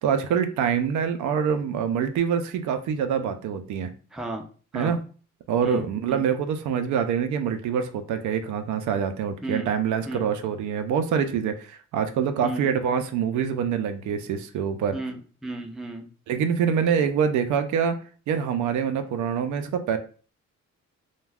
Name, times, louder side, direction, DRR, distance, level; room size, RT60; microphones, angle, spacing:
voice 1, 0.0-3.9 4.7-5.0 5.5-15.0 16.3-18.0 18.3-20.0, right 7 dB, 75° right, 8 dB, 0.5 m, -25 dB
voice 2, 4.1-4.4 4.7-5.0 5.6-6.2 9.4-9.7 10.1-10.3 12.4-12.7 14.9-16.0, right 2 dB, ahead, 3 dB, 0.4 m, -34 dB
2.3 x 2.2 x 3.3 m, 0.39 s
cardioid pair, 90°, 30 cm